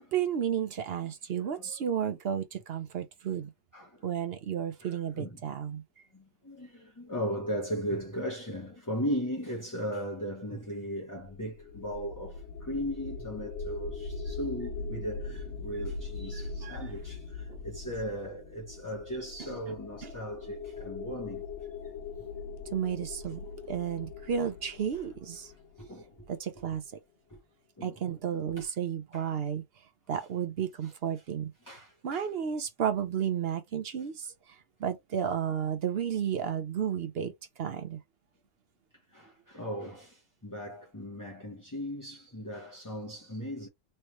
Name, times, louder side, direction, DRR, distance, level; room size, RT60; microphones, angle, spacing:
voice 1, 0.0-3.5 4.0-5.8 16.3-16.8 17.5-17.6 19.4-19.8 20.0-20.1 22.7-25.5 26.3-26.8 27.8-29.6 30.1-31.5 32.0-37.3 37.6-38.0, right 8 dB, 60° right, 0.6 m, -32 dB
voice 2, 3.7-4.0 4.8-5.5 6.1-21.4 22.9-23.0 25.8-26.3 27.3-27.4 27.8-28.0 28.6-28.7 29.1-29.3 30.8-30.9 31.6-32.3 39.1-43.7, equal, 20° left, 0.6 m, -37 dB
sound 1, 11.2-26.3, left 4 dB, 70° left, 0.7 m, -41 dB
3.3 x 3.2 x 3.0 m
omnidirectional pair, 1.8 m